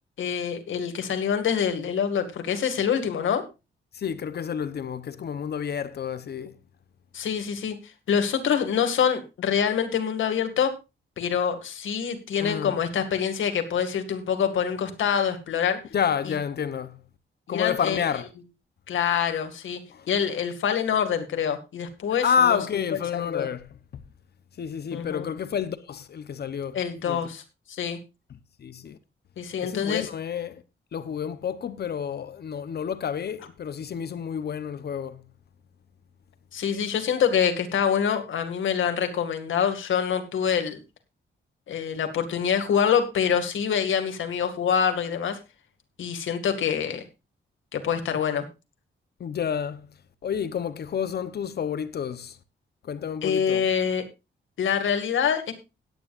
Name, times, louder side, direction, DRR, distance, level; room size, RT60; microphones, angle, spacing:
voice 1, 0.2-3.4 7.1-10.7 11.2-15.8 16.3-16.4 17.5-18.0 18.9-19.8 20.1-22.6 23.1-23.5 24.9-25.3 26.7-27.4 27.7-28.0 29.4-30.1 36.5-40.8 41.7-45.4 46.0-47.0 47.7-48.5 53.2-54.0 54.6-55.5, left 7 dB, 90° left, 2.1 m, -25 dB
voice 2, 3.9-6.5 12.4-12.8 15.9-17.0 17.5-18.3 19.9-20.1 22.2-23.6 24.6-26.8 27.0-27.2 28.6-29.0 29.6-30.6 30.9-35.2 49.2-49.9 50.2-52.4 52.8-53.6, left 7 dB, 55° left, 0.9 m, -29 dB
17.5 x 9.9 x 2.5 m
wide cardioid pair, 150°, 20 cm